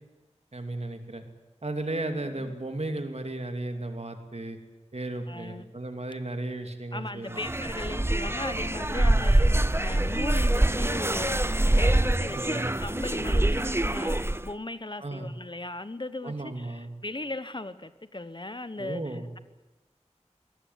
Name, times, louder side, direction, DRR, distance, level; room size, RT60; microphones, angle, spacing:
voice 1, 0.5-1.2 1.6-4.6 4.9-7.4 9.1-9.4 12.3-12.7 15.0-15.3 16.2-16.9 18.8-19.3, right 2 dB, 60° right, 6 dB, 2.8 m, -35 dB
voice 2, 5.3-5.7 6.9-19.4, left 2 dB, 40° left, 13 dB, 1.1 m, -38 dB
sound 1, 7.3-14.5, right 1 dB, 20° right, 0.7 m, -25 dB
22.5 x 18.5 x 9.4 m, 1.1 s
wide cardioid pair, 45°, 12 cm